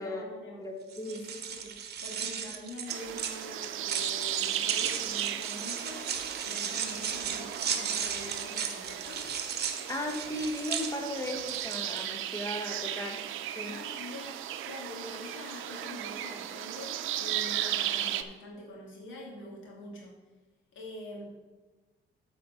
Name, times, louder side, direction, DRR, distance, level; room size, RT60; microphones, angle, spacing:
voice 1, 0.0-0.8 1.1-9.3 13.6-20.1 20.7-21.3, left 1 dB, 80° left, -2 dB, 2.8 m, -45 dB
voice 2, 0.6-1.2 9.9-13.2 13.6-13.8, left 1 dB, 15° left, 2 dB, 1.5 m, -36 dB
sound 1, 0.9-12.0, right 7 dB, 55° right, 1.0 m, -36 dB
sound 2, 2.9-18.2, right 12 dB, 85° right, 0.6 m, -36 dB
7.7 x 5.0 x 7.1 m, 1.2 s
cardioid pair, 90°, 20 cm